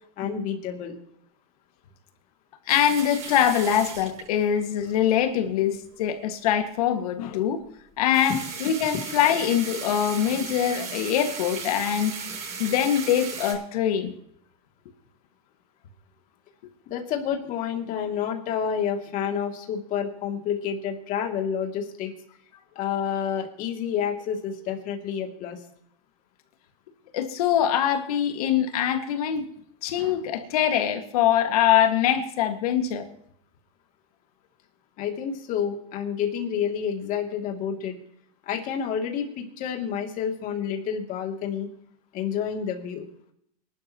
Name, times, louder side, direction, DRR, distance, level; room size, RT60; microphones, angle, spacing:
voice 1, 0.2-1.0 16.9-22.1 22.7-25.6 35.0-38.0 38.5-41.7 42.1-43.1, left 8 dB, 45° left, 2.8 m, -29 dB
voice 2, 2.7-7.6 8.0-12.2 12.6-14.1 27.1-29.5 29.8-33.1, left 10 dB, 75° left, 2.0 m, -23 dB
sound 1, 2.7-5.2 8.0-13.5, right 5 dB, 35° right, 7.1 m, -36 dB
24.5 x 12.0 x 3.1 m
supercardioid pair, 125°, 19 cm